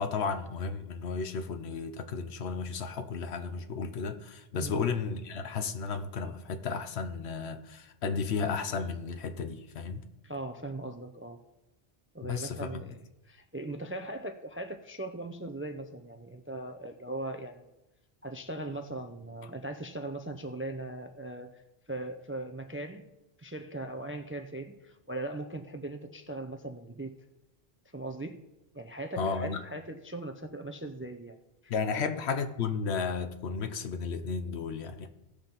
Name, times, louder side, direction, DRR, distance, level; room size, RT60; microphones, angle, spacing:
voice 1, 0.0-10.0 12.2-12.8 29.2-29.6 31.7-35.1, left 5 dB, 80° left, 8 dB, 1.0 m, -33 dB
voice 2, 10.2-11.4 12.1-13.0 13.3-17.7 18.2-21.6 21.9-23.1 23.4-27.2 27.9-28.4 28.7-32.1, right 2 dB, 20° right, 7 dB, 0.3 m, -39 dB
16.0 x 5.8 x 3.9 m, 0.95 s
omnidirectional pair, 1.1 m